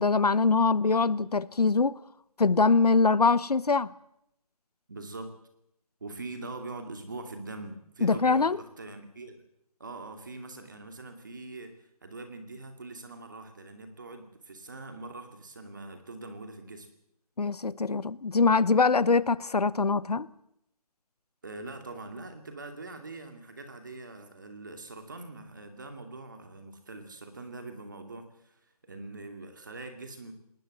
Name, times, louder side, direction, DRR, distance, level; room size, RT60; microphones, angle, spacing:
voice 1, 0.0-2.0 2.4-3.9 8.0-8.6 17.4-20.3, left 4 dB, 75° left, 1.0 m, -23 dB
voice 2, 4.9-5.3 6.0-9.4 9.8-16.9 21.4-30.3, right 2 dB, 30° right, 2.5 m, -43 dB
20.5 x 19.5 x 7.7 m
figure-of-eight pair, 180°, 20 cm